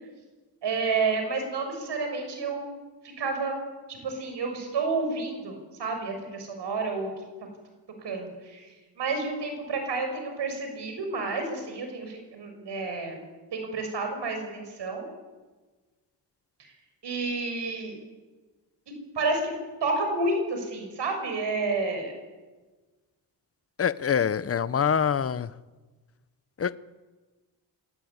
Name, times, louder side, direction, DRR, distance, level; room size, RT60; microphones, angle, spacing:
voice 1, 0.6-2.7 3.2-3.5 3.9-5.5 5.8-7.1 8.0-13.2 13.5-15.1 16.6-16.7 17.0-17.9 19.1-19.5 19.8-22.1, right 3 dB, 75° right, 6.3 m, -30 dB
voice 2, 23.8-25.5 26.6-26.8, left 7 dB, 35° left, 0.8 m, -25 dB
27.0 x 21.0 x 9.6 m
wide cardioid pair, 170°, 42 cm